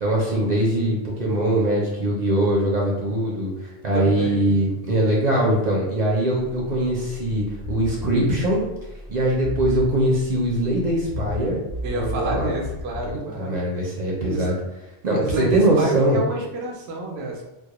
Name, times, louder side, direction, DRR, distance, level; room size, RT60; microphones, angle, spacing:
voice 1, 0.0-8.6 9.1-11.6 12.0-12.5 13.1-14.6 15.0-16.2, right 1 dB, 50° right, -3 dB, 0.6 m, -22 dB
voice 2, 3.9-4.5 11.8-13.6 14.3-14.5 15.2-17.4, right 2 dB, 85° right, 0 dB, 0.8 m, -28 dB
sound 1, 6.4-13.2, left 2 dB, 40° left, 0.6 m, -35 dB
2.2 x 2.1 x 2.9 m, 1.0 s
omnidirectional pair, 1.0 m